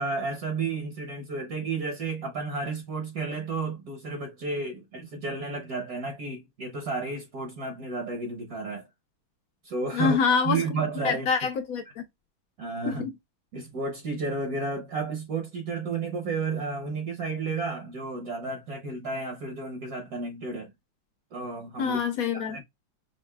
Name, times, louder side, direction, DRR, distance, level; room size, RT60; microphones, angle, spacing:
voice 1, 0.0-8.9 9.6-10.2 10.4-11.3 12.6-13.1 13.5-20.7 21.3-22.0 22.3-22.6, right 3 dB, 60° right, 1.1 m, -32 dB
voice 2, 9.9-10.6 11.0-12.0 12.9-13.1 21.8-22.6, left 6 dB, 75° left, 0.8 m, -26 dB
5.7 x 2.5 x 2.2 m
omnidirectional pair, 2.3 m